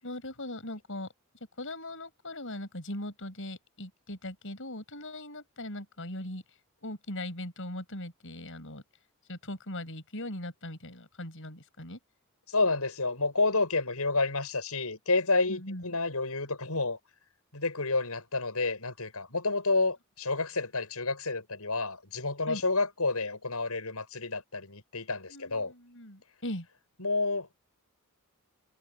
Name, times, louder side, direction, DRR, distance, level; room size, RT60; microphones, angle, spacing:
voice 1, 0.0-1.1 1.6-6.4 6.8-8.8 9.3-12.0 15.5-16.0 22.5-22.6 25.3-26.7, left 1 dB, 60° left, 7.4 m, -40 dB
voice 2, 12.5-17.0 17.5-25.7 27.0-27.5, left 3 dB, 80° left, 7.0 m, -29 dB
head